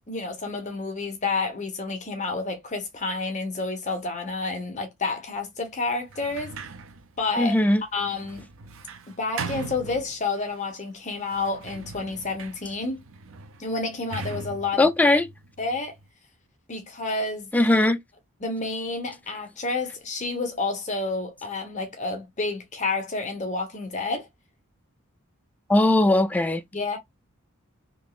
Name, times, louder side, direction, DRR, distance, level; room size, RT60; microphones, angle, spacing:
voice 1, 0.0-6.5 7.2-7.6 7.9-8.5 9.2-13.0 13.6-14.9 15.6-15.9 16.7-17.5 18.4-24.3 26.7-27.0, left 3 dB, 35° left, 1.1 m, -29 dB
Sliding door, 6.1-10.6 11.2-16.1, right 4 dB, 65° right, 0.6 m, -40 dB
voice 2, 7.4-7.8 14.8-15.3 17.5-18.0 25.7-26.6, left 1 dB, 5° left, 0.3 m, -19 dB
3.6 x 2.9 x 2.4 m
head